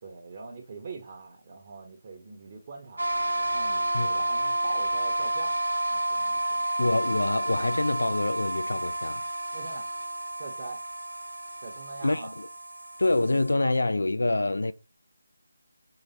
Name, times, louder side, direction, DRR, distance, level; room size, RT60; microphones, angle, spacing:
voice 1, 0.0-5.6 5.9-6.7 9.5-10.0 10.4-10.8 11.6-12.3, right 4 dB, 35° right, 0.8 m, -43 dB
sound 1, 3.0-13.5, right 1 dB, 80° right, 1.0 m, -30 dB
voice 2, 6.8-9.2 12.0-12.5 13.0-14.7, left 2 dB, 75° left, 0.3 m, -26 dB
3.9 x 3.3 x 4.1 m
figure-of-eight pair, 155°, 0 cm